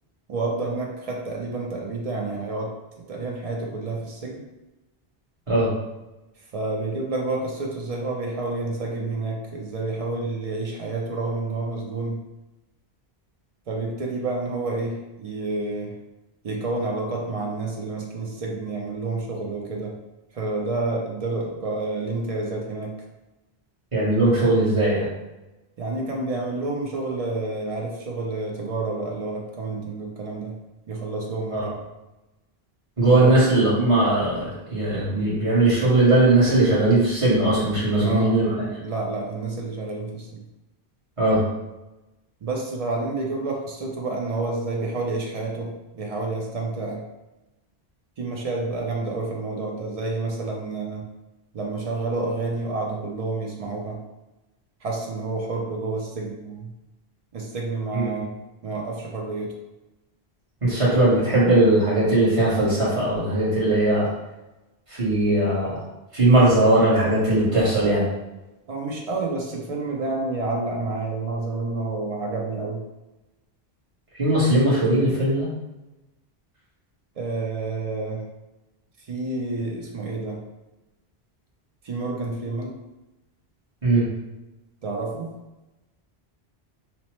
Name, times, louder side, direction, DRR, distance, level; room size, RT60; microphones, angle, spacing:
voice 1, 0.3-2.7 3.1-4.4 6.5-12.2 13.7-16.0 16.4-19.9 20.3-23.0 25.8-30.6 30.9-31.8 33.2-33.4 37.7-38.4 38.8-40.4 42.4-47.0 48.2-51.1 51.5-54.0 54.8-56.7 57.3-58.3 58.6-59.5 68.7-72.8 77.2-78.2 79.0-80.4 81.8-82.7 84.8-85.3, right 3 dB, 50° right, -1 dB, 0.5 m, -29 dB
voice 2, 23.9-25.1 31.5-31.6 33.0-38.7 41.2-41.4 57.9-58.1 60.6-64.1 64.9-65.8 66.1-68.1 74.1-75.5 83.8-84.1, right 2 dB, 30° right, -8 dB, 1.1 m, -19 dB
2.9 x 2.0 x 3.0 m, 1.0 s
omnidirectional pair, 1.1 m